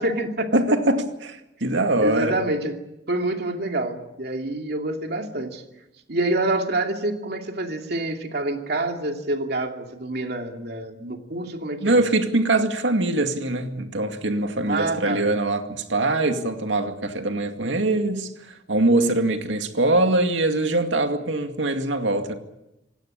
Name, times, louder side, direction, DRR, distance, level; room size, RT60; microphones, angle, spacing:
voice 1, 0.0-0.8 2.0-2.8 3.1-5.6 6.1-12.0 14.7-15.3, right 2 dB, 60° right, 2.6 m, -27 dB
voice 2, 0.5-2.4 11.8-22.3, right 2 dB, 90° right, 2.3 m, -23 dB
27.0 x 17.0 x 8.8 m
head